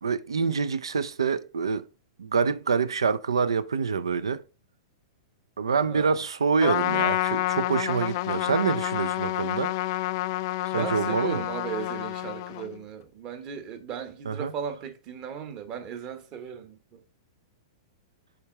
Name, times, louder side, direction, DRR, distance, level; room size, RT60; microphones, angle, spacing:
voice 1, 0.0-1.8 2.2-4.4 5.6-9.7 10.7-11.4 14.3-14.5, right 5 dB, 75° right, 0.5 m, -26 dB
voice 2, 5.8-6.3 8.3-8.5 10.7-17.0, right 7 dB, 35° right, 1.1 m, -37 dB
Trumpet, 6.6-12.8, left 17 dB, 45° left, 0.3 m, -29 dB
7.1 x 3.7 x 4.6 m
figure-of-eight pair, 100°, 3 cm